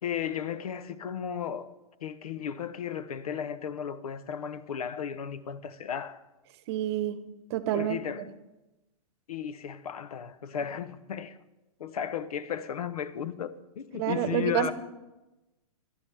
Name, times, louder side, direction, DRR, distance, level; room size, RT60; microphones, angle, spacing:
voice 1, 0.0-1.7 2.0-6.2 7.7-8.3 9.3-11.4 11.8-14.7, left 8 dB, 80° left, 0.8 m, -34 dB
voice 2, 6.7-7.2 7.5-8.0 14.0-14.7, right 12 dB, 45° right, 0.9 m, -28 dB
18.0 x 11.5 x 3.4 m
hypercardioid pair, 135°, 19 cm